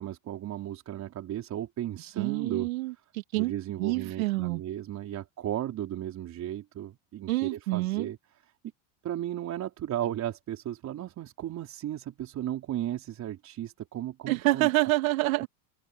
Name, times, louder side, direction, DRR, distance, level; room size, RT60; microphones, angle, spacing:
voice 1, 0.0-2.7 3.3-8.2 9.0-14.7, right 12 dB, 40° right, 4.3 m, -35 dB
voice 2, 2.2-3.5 3.8-4.6 7.3-8.1 14.3-15.5, right 19 dB, 85° right, 2.9 m, -27 dB
supercardioid pair, 115°, 40 cm